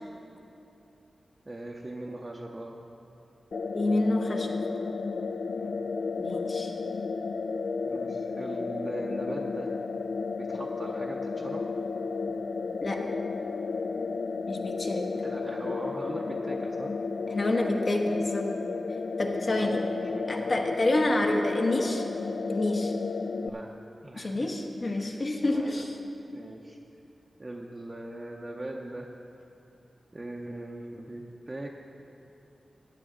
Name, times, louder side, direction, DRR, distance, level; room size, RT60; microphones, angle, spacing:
voice 1, 1.5-2.8 5.6-5.8 7.8-9.7 10.4-11.6 14.6-14.7 15.1-16.9 19.6-20.5 21.0-21.2 23.4-23.7 24.0-24.6 24.9-25.8 26.3-26.8 27.4-29.1 30.1-31.8, right 1 dB, 25° right, -2 dB, 0.7 m, -40 dB
sound 1, 3.5-23.5, left 4 dB, 70° left, 0.3 m, -33 dB
voice 2, 3.7-4.6 6.2-6.7 12.8-13.0 14.5-15.1 17.3-18.5 19.2-19.8 20.3-22.0 22.5-22.9 24.1-25.9, left 2 dB, 50° left, 2 dB, 1.2 m, -28 dB
15.0 x 9.2 x 3.8 m, 2.8 s
wide cardioid pair, 85°, 0 cm